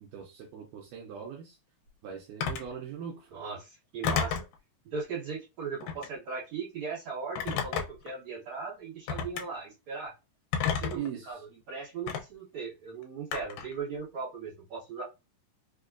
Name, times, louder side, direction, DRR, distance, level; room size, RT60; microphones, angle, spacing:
voice 1, 0.0-1.6 2.0-3.3 10.9-11.5, right 8 dB, 80° right, 0 dB, 2.1 m, -40 dB
Telephone, 2.4-2.7 4.0-4.5 5.8-6.2 7.4-8.1 9.1-9.4 10.5-11.1 12.1-12.2 13.3-13.7, left 7 dB, 80° left, 2.2 m, -31 dB
voice 2, 3.3-4.4 4.8-10.1 10.6-11.4 11.7-15.0, right 5 dB, 60° right, -7 dB, 2.3 m, -38 dB
5.1 x 2.3 x 2.4 m, 0.26 s
omnidirectional pair, 3.8 m